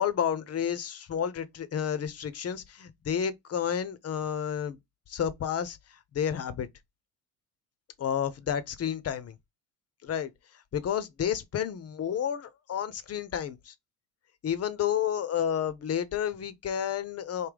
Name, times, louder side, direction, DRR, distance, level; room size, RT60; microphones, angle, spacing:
voice 1, 0.0-4.8 5.1-5.8 6.1-6.7 8.0-9.3 10.0-10.3 10.7-13.7 14.4-17.5, left 8 dB, 30° left, 0.6 m, -30 dB
3.6 x 2.7 x 3.4 m
hypercardioid pair, 65°, 48 cm